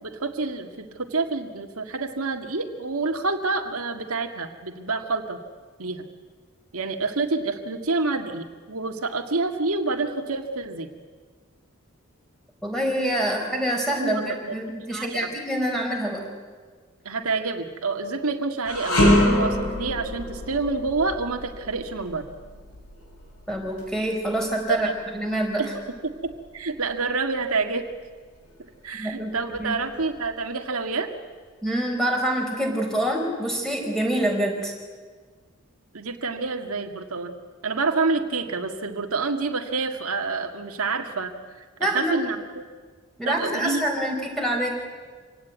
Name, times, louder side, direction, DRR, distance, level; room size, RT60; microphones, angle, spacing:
voice 1, 0.0-5.4 5.8-6.0 6.7-10.9 14.0-14.5 14.9-15.3 17.0-22.3 24.7-24.9 25.6-25.7 26.0-27.9 28.8-31.1 35.9-37.4 37.6-41.3 41.8-42.6 43.3-43.8, right 3 dB, 85° right, 4 dB, 1.9 m, -28 dB
voice 2, 12.6-16.2 23.5-24.9 25.1-25.6 29.0-29.3 29.6-29.8 31.6-34.7 41.8-42.1 43.2-44.7, right 1 dB, ahead, 1 dB, 4.3 m, -26 dB
sound 1, 18.7-27.9 28.3-28.5 29.4-30.2, left 1 dB, 75° left, 6.8 m, -27 dB
26.0 x 17.5 x 9.4 m, 1.5 s
head